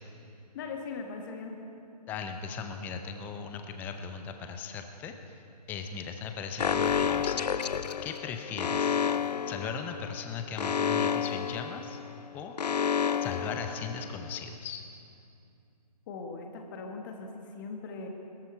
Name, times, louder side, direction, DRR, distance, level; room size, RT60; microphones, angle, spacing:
voice 1, 0.5-1.6 16.1-18.1, left 4 dB, 30° left, 3 dB, 1.6 m, -40 dB
voice 2, 2.1-5.1 5.7-7.5 8.0-9.0 9.5-12.0 12.3-12.6 13.2-14.8, left 6 dB, 10° left, 6 dB, 0.5 m, -38 dB
Alarm, 6.6-14.4, left 7 dB, 75° left, 0.4 m, -30 dB
21.5 x 13.5 x 4.4 m, 2.7 s
figure-of-eight pair, 135°, 21 cm